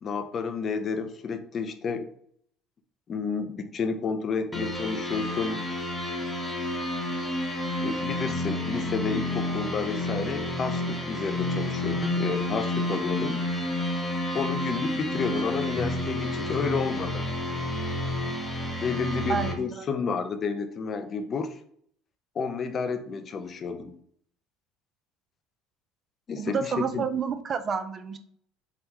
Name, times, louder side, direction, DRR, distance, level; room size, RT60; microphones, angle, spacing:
voice 1, 0.0-2.1 3.1-5.7 7.8-13.4 14.3-17.3 18.8-21.5 22.4-23.9 26.3-27.0, left 5 dB, 40° left, 8 dB, 0.5 m, -31 dB
No Turning Back Synth Pad, 4.5-19.5, left 1 dB, 10° left, 0.9 m, -30 dB
voice 2, 19.3-19.8 26.4-28.2, right 6 dB, 40° right, 10 dB, 0.4 m, -29 dB
3.5 x 2.1 x 2.9 m, 0.65 s
supercardioid pair, 90°, 0 cm